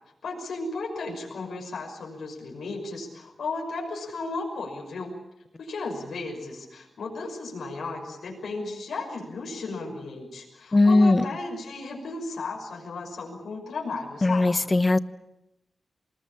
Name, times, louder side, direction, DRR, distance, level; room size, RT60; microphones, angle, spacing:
voice 1, 0.2-5.2 5.6-14.7, left 3 dB, 80° left, 0 dB, 5.9 m, -35 dB
voice 2, 10.7-11.2 14.2-15.0, left 2 dB, 25° left, 14 dB, 0.9 m, -19 dB
25.5 x 20.0 x 8.8 m, 0.90 s
wide cardioid pair, 130°, 0 cm